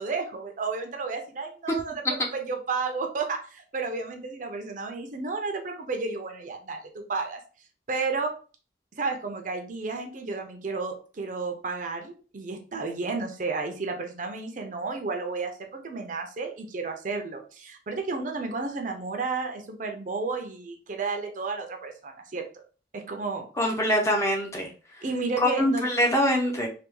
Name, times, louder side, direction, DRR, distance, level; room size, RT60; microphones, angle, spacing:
voice 1, 0.0-1.9 2.3-7.4 7.9-8.3 9.0-22.4 22.9-23.5 25.0-25.8, right 4 dB, 45° right, 4 dB, 0.5 m, -32 dB
voice 2, 23.6-24.7 25.4-26.7, equal, 15° left, -1 dB, 0.6 m, -24 dB
3.3 x 2.3 x 3.0 m, 0.37 s
head